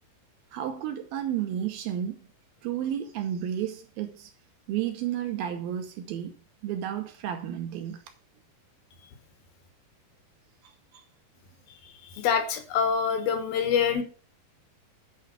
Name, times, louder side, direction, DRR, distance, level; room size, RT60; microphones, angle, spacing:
voice 1, 0.5-2.2 2.6-4.3 4.7-6.3 6.6-8.0 10.9-11.0, right 10 dB, 75° right, 2.5 m, -32 dB
voice 2, 12.1-14.0, left 7 dB, 70° left, 2.7 m, -25 dB
10.5 x 4.6 x 6.7 m
omnidirectional pair, 4.6 m